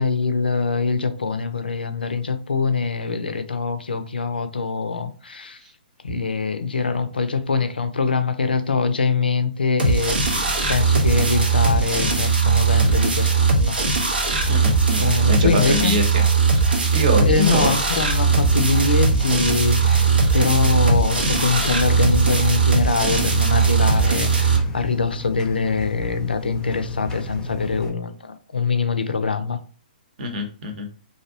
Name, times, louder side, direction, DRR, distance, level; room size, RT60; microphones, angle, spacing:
voice 1, 0.0-5.6 6.0-10.4 10.7-13.8 15.0-15.9 17.3-29.6, left 4 dB, 90° left, 0.4 m, -23 dB
sound 1, 9.8-24.6, right 4 dB, 90° right, 0.7 m, -19 dB
voice 2, 14.5-16.2 16.9-17.7 30.2-30.9, equal, 55° right, 0.7 m, -24 dB
sound 2, 18.2-27.9, left 3 dB, 15° left, 0.4 m, -32 dB
2.6 x 2.0 x 2.6 m
hypercardioid pair, 130°, 5 cm